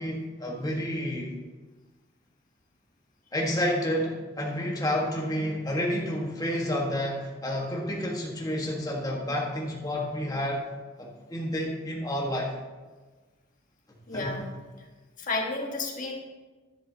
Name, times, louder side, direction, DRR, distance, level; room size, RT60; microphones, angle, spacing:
voice 1, 0.0-1.4 3.3-10.7 11.0-12.5 14.1-14.3, equal, 20° left, -2 dB, 1.7 m, -30 dB
voice 2, 14.1-14.5 15.2-16.2, left 2 dB, 40° left, 0 dB, 1.5 m, -31 dB
11.0 x 10.5 x 2.9 m, 1.3 s
head